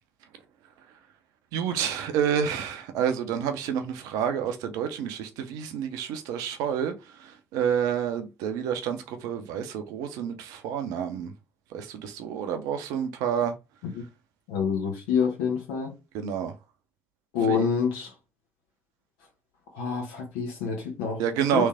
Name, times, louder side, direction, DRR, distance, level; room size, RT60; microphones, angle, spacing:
voice 1, 1.5-6.9 7.2-11.3 11.7-13.5 16.1-16.5 17.5-17.7 21.2-21.7, right 8 dB, 65° right, 0.6 m, -29 dB
voice 2, 14.5-15.9 17.3-18.1 19.7-21.2 21.5-21.6, left 6 dB, 70° left, 1.3 m, -27 dB
3.3 x 3.1 x 3.5 m
figure-of-eight pair, 45°, 7 cm